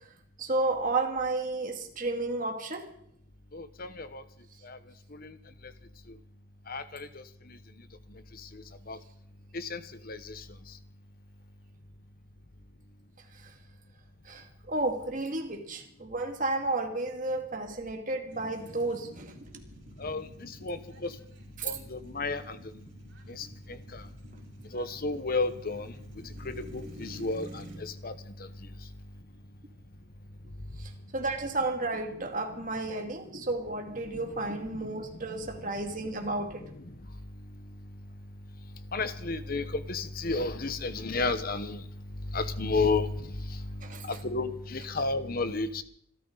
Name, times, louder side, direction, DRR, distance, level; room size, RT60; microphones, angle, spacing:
voice 1, 0.4-2.9 13.4-13.5 14.3-19.6 21.6-21.8 30.8-36.7 43.8-44.0, right 2 dB, 40° right, 3 dB, 2.2 m, -32 dB
voice 2, 3.5-4.2 5.2-5.3 6.7-7.1 8.9-9.0 9.5-9.8 10.1-10.3 20.0-21.1 21.6-22.6 23.4-23.5 24.7-25.9 26.4-28.1 34.5-34.6 38.9-41.8 42.3-43.1 44.1-45.8, left 3 dB, 50° left, 12 dB, 1.0 m, -32 dB
sound 1, 18.3-27.8, right 1 dB, 65° right, 5.9 m, -50 dB
26.0 x 13.0 x 4.0 m, 0.68 s
head